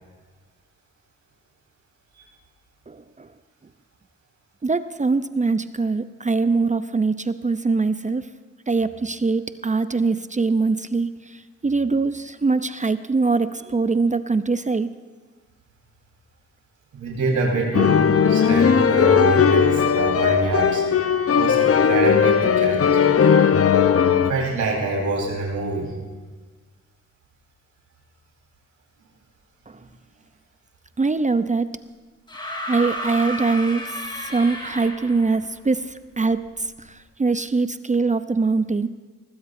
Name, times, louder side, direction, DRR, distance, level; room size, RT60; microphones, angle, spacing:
voice 1, 4.6-8.2 8.7-11.1 11.6-14.9 31.0-31.6 32.7-33.8 34.3-35.9 36.2-36.4 37.2-38.9, right 4 dB, 25° right, 12 dB, 0.6 m, -22 dB
voice 2, 16.9-20.8 21.3-23.2 24.1-25.9, right 3 dB, 75° right, -2 dB, 4.3 m, -25 dB
sound 1, 17.7-24.3, left 7 dB, 50° left, 0.9 m, -17 dB
sound 2, 32.3-35.3 36.6-36.7, equal, 15° left, 3.4 m, -32 dB
20.0 x 18.5 x 2.7 m, 1.4 s
supercardioid pair, 45°, 30 cm